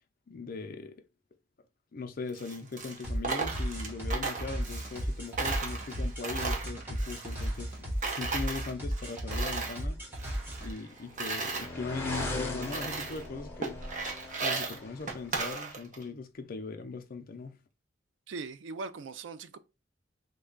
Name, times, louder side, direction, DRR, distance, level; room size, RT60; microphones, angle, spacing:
voice 1, 0.3-1.0 1.9-10.0 10.6-13.8 14.4-17.6, left 4 dB, 50° left, 0.5 m, -40 dB
Coin (dropping), 2.3-5.1 5.4-7.8 8.0-9.8 10.1-11.7 12.2-12.3 12.6-13.3 13.6-16.0, right 4 dB, 40° right, 0.7 m, -36 dB
sound 1, 3.0-10.7, equal, 10° right, 1.0 m, -35 dB
sound 2, 10.3-15.3, left 2 dB, 15° left, 0.8 m, -39 dB
voice 2, 18.3-19.6, right 4 dB, 75° right, 0.4 m, -40 dB
3.2 x 2.2 x 3.7 m
head